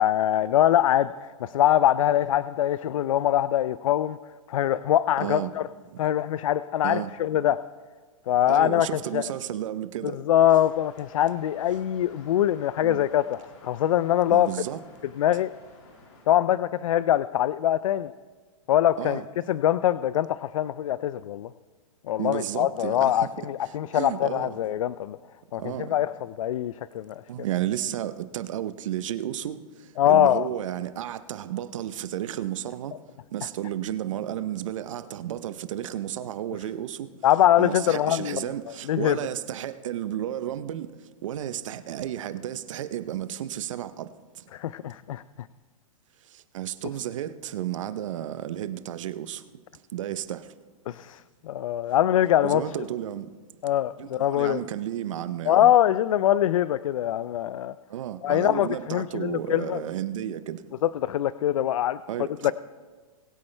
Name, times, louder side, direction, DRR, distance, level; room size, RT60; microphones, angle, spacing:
voice 1, 0.0-4.2 4.5-5.6 6.0-7.6 8.3-8.9 9.1-9.2 10.0-14.5 15.2-15.5 16.3-18.1 18.7-19.2 19.5-21.5 22.1-25.2 25.5-26.1 26.4-27.2 30.0-30.5 37.2-38.4 38.9-39.2 44.5-45.2 50.9-51.2 51.4-52.6 53.6-54.6 55.5-57.7 58.2-59.8 60.8-62.0 62.4-62.5, left 12 dB, 70° left, 0.4 m, -23 dB
voice 2, 5.2-5.5 6.8-7.1 8.5-10.2 12.8-13.1 14.3-14.8 19.0-19.3 22.2-23.3 23.9-24.6 25.6-25.9 27.3-29.6 30.1-32.9 33.3-37.1 37.6-40.9 41.2-44.1 44.4-44.5 46.3-49.4 49.9-50.5 52.4-53.3 54.0-55.7 57.9-60.6 62.1-62.5, right 11 dB, 65° right, 0.8 m, -32 dB
sound 1, 10.3-16.3, left 3 dB, 50° left, 3.0 m, -53 dB
21.0 x 8.5 x 3.3 m
hypercardioid pair, 145°, 18 cm